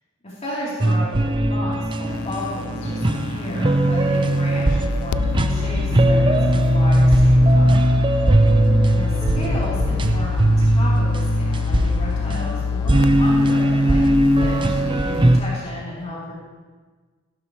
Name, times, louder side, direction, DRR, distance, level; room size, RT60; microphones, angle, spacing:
voice 1, 0.2-7.8 8.9-16.3, left 1 dB, 30° left, -7 dB, 3.7 m, -33 dB
sound 1, 0.8-15.4, right 1 dB, 25° right, 0.6 m, -19 dB
sound 2, 2.1-15.4, left 7 dB, 90° left, 0.3 m, -27 dB
16.0 x 11.5 x 3.3 m, 1.4 s
head